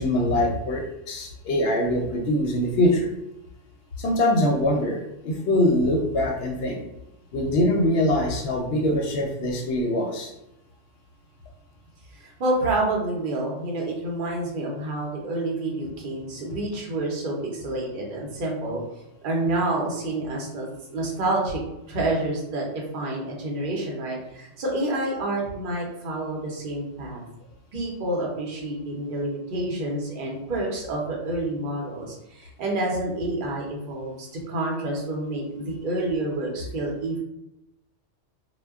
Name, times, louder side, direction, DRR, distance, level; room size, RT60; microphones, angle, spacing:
voice 1, 0.0-3.1 4.0-6.8 7.3-10.3, left 1 dB, 65° left, 1 dB, 0.7 m, -23 dB
voice 2, 12.2-18.8 19.2-20.7 20.9-21.6 21.9-27.2 27.7-37.2, right 2 dB, 50° right, -2 dB, 0.8 m, -28 dB
2.2 x 2.1 x 3.4 m, 0.89 s
omnidirectional pair, 1.3 m